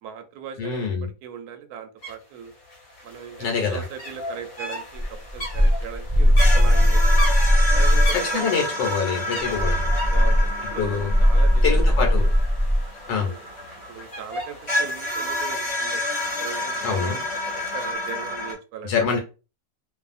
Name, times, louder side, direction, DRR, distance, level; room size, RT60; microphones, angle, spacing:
voice 1, 0.0-2.5 3.0-7.0 7.7-8.8 10.1-11.9 12.2-12.3 13.1-13.5 13.9-16.0 16.4-18.9, right 8 dB, 70° right, 7 dB, 0.9 m, -38 dB
voice 2, 0.6-1.1 3.4-3.8 8.3-9.9 10.8-11.1 11.6-12.2 13.1-13.3 16.8-17.2 18.8-19.2, left 6 dB, 80° left, 1 dB, 1.3 m, -25 dB
sound 1, 2.0-2.1 2.4-17.9, equal, 55° left, 1.1 m, -38 dB
sound 2, 5.0-8.2 9.4-12.9, equal, 25° right, 0.8 m, -18 dB
sound 3, 6.4-14.0 14.7-18.5, left 1 dB, 25° left, 0.7 m, -29 dB
2.7 x 2.4 x 2.4 m, 0.32 s
omnidirectional pair, 1.9 m